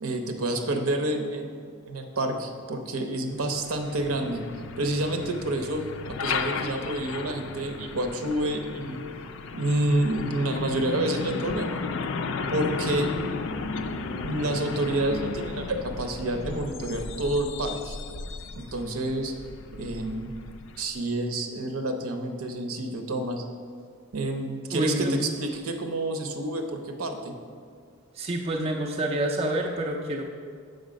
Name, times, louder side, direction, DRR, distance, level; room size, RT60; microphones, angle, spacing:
voice 1, 0.0-4.4 4.8-9.0 9.5-11.8 12.5-13.1 14.2-18.0 18.5-19.3 19.7-20.3 20.8-23.4 24.1-27.4, right 1 dB, 75° right, 5 dB, 0.7 m, -29 dB
Truck, 3.3-21.0, left 4 dB, 60° left, 0.4 m, -34 dB
voice 2, 24.7-25.2 28.1-30.2, right 1 dB, 25° right, 1 dB, 0.4 m, -27 dB
6.5 x 5.4 x 5.1 m, 2.1 s
head